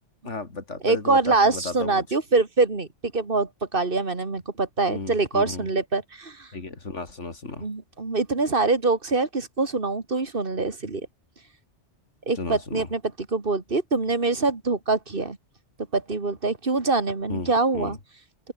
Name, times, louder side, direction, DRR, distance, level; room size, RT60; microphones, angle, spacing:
voice 1, 0.3-2.0 4.9-5.7 6.5-7.6 12.4-12.9 17.3-18.0, left 3 dB, 90° left, 3.3 m, -34 dB
voice 2, 0.8-2.9 3.1-6.5 7.6-11.1 12.3-13.0 13.3-15.4 15.9-18.0, right 3 dB, 50° right, 2.5 m, -24 dB
open air
omnidirectional pair, 1.2 m